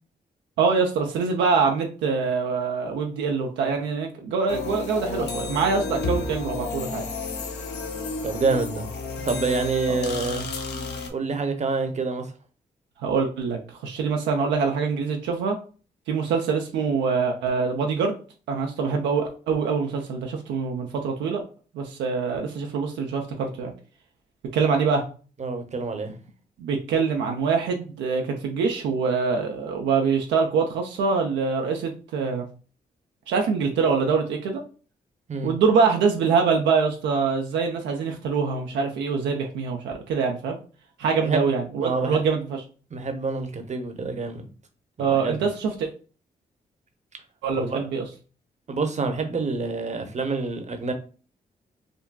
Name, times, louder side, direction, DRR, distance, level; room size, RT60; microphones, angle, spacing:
voice 1, 0.6-7.0 9.9-10.0 13.0-15.6 16.1-18.2 18.5-21.4 21.7-23.7 24.5-25.0 26.6-32.4 33.3-34.6 35.4-40.6 41.0-42.6 45.0-45.9 47.4-48.0, right 5 dB, 85° right, 0.5 m, -24 dB
sound 1, 4.5-11.1, left 3 dB, 70° left, 0.6 m, -31 dB
voice 2, 8.2-8.9 9.3-10.4 11.1-12.3 25.4-26.1 35.3-35.5 41.2-41.4 41.8-42.2 42.9-44.5 45.0-45.4 47.5-47.9 48.7-50.9, right 4 dB, 40° right, 0.7 m, -27 dB
3.7 x 2.2 x 2.2 m
supercardioid pair, 45°, 18 cm